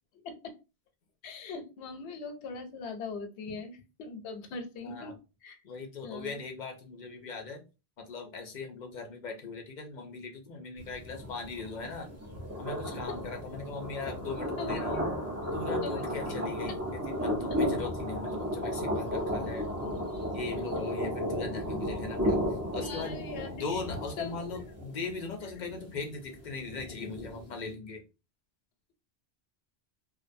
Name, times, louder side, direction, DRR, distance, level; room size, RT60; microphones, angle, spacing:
voice 1, 1.2-5.1 5.4-5.6 6.0-6.4 12.9-13.2 14.6-15.0 15.8-16.1 22.8-23.8 24.2-24.4, left 4 dB, 90° left, 7 dB, 0.8 m, -40 dB
voice 2, 4.8-5.1 5.6-7.6 8.1-12.1 12.6-15.0 15.5-19.7 20.3-23.2 23.5-28.0, left 4 dB, 55° left, 4 dB, 0.6 m, -39 dB
sound 1, 10.8-27.7, equal, 20° right, 0.5 m, -34 dB
2.5 x 2.1 x 2.5 m, 0.30 s
omnidirectional pair, 1.1 m